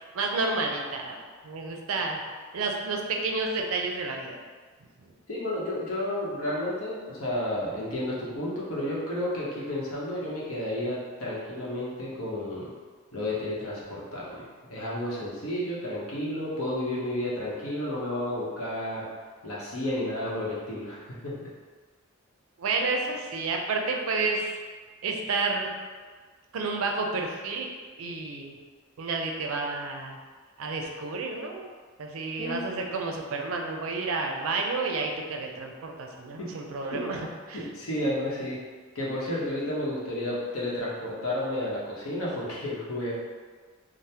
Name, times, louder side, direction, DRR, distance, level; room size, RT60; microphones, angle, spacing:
voice 1, 0.1-1.2 1.4-2.2 2.5-4.4 22.6-24.6 25.0-25.7 26.5-27.7 28.0-28.5 29.0-30.2 30.6-31.7 32.0-37.7, right 3 dB, 70° right, 2 dB, 0.4 m, -30 dB
voice 2, 5.3-12.7 13.1-19.1 19.4-21.5 32.4-32.6 36.9-37.0 37.5-38.6 38.9-43.1, left 1 dB, 85° left, -6 dB, 0.8 m, -31 dB
3.3 x 2.0 x 2.7 m, 1.5 s
head